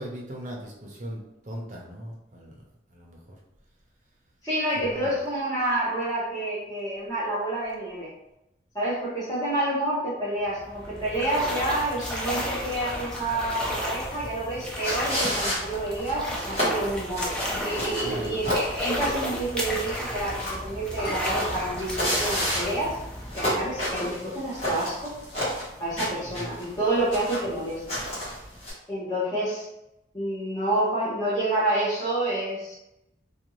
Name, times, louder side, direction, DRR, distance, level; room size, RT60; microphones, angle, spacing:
voice 1, 0.0-2.6 2.9-3.4 4.8-5.1 18.0-18.5 26.2-26.5, equal, 40° right, -2 dB, 0.6 m, -39 dB
voice 2, 4.4-8.1 8.7-17.3 17.6-23.0 23.3-25.1 25.8-27.8 28.9-29.7 30.1-32.8, right 1 dB, 20° left, -11 dB, 0.9 m, -28 dB
sound 1, 10.4-24.2, equal, 5° left, 0.3 m, -33 dB
sound 2, 14.8-28.7, equal, 35° left, 1.2 m, -31 dB
sound 3, 16.5-18.0 20.8-22.6 23.5-23.6 27.3-28.9, equal, 65° left, 0.8 m, -41 dB
2.6 x 2.3 x 3.0 m, 0.88 s
head